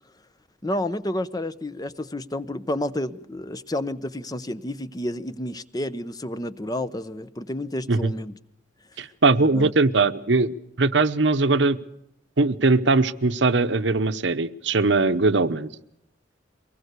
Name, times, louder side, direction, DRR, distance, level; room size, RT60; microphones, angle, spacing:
voice 1, 0.6-8.4 9.4-9.7, left 1 dB, 20° left, 0.7 m, -30 dB
voice 2, 9.0-11.8 12.4-15.7, right 3 dB, 70° right, 1.0 m, -20 dB
23.5 x 20.0 x 6.8 m
head